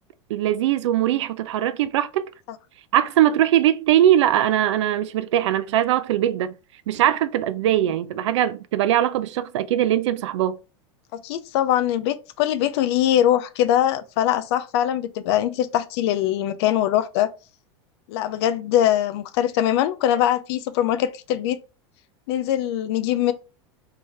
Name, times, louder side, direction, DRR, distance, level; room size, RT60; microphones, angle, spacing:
voice 1, 0.3-2.3 2.9-6.5 6.9-10.6, right 11 dB, 80° right, 0.4 m, -21 dB
voice 2, 11.1-17.3 18.1-21.6 22.3-23.3, left 11 dB, 65° left, 0.5 m, -22 dB
3.4 x 3.3 x 2.7 m
supercardioid pair, 125°, 15 cm